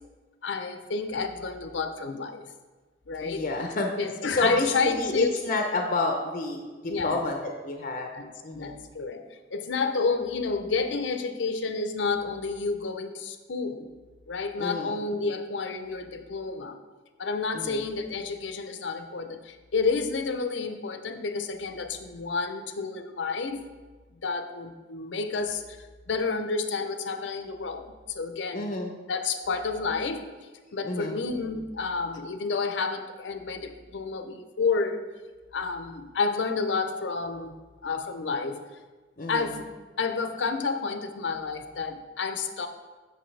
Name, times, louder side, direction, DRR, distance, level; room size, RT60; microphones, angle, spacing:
voice 1, 0.4-2.5 3.1-3.4 4.0-5.3 6.9-7.2 8.1-13.9 14.3-16.8 17.2-23.7 24.2-28.7 29.1-30.3 30.7-35.0 35.5-37.6 37.8-38.6 39.3-39.7 40.0-42.7, left 4 dB, 85° left, 8 dB, 0.6 m, -30 dB
voice 2, 3.2-3.9 4.3-8.1 8.4-8.8 14.6-15.0 17.5-17.8 28.5-28.9 30.8-31.2 39.2-39.5, left 2 dB, 45° left, 3 dB, 0.6 m, -29 dB
7.7 x 6.4 x 3.3 m, 1.3 s
head